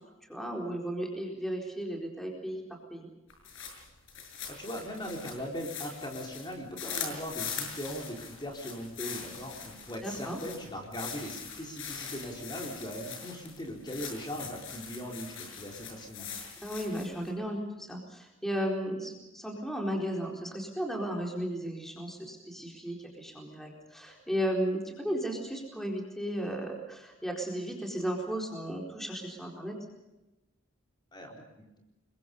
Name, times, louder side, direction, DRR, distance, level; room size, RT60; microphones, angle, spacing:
voice 1, 0.3-2.6 2.9-3.1 10.0-10.4 16.6-29.8, equal, ahead, 0 dB, 4.3 m, -35 dB
sound 1, 3.3-17.3, left 6 dB, 70° left, 6.9 m, -42 dB
voice 2, 4.6-16.3 31.1-31.7, equal, 20° left, 0 dB, 4.4 m, -39 dB
29.5 x 23.0 x 5.5 m, 0.98 s
head